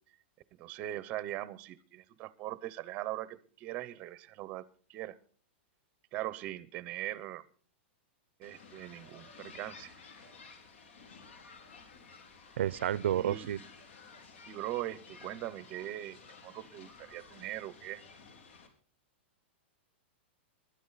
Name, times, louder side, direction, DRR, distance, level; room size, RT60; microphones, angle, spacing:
voice 1, 0.5-4.6 4.9-5.2 6.1-7.4 8.4-9.9 13.1-13.5 14.5-16.2 16.4-18.0, right 14 dB, 25° right, 18 dB, 0.7 m, -40 dB
sound 1, 8.4-18.7, left 4 dB, 75° left, 4.0 m, -54 dB
voice 2, 12.6-13.6, right 11 dB, 75° right, 21 dB, 0.6 m, -30 dB
21.5 x 12.0 x 4.0 m, 0.43 s
supercardioid pair, 175°, 6 cm